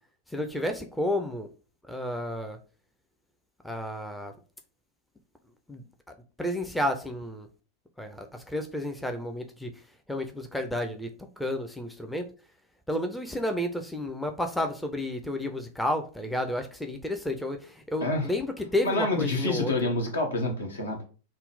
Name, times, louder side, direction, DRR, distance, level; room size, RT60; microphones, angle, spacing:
voice 1, 0.3-1.5 1.9-2.6 3.6-4.3 5.7-5.8 6.4-7.5 8.0-9.7 10.1-11.1 11.4-12.3 12.9-19.9, left 1 dB, 5° left, 0.5 m, -31 dB
voice 2, 18.0-18.3 18.8-21.0, left 2 dB, 70° left, 1.1 m, -28 dB
3.7 x 2.1 x 3.9 m
figure-of-eight pair, 90°, 0 cm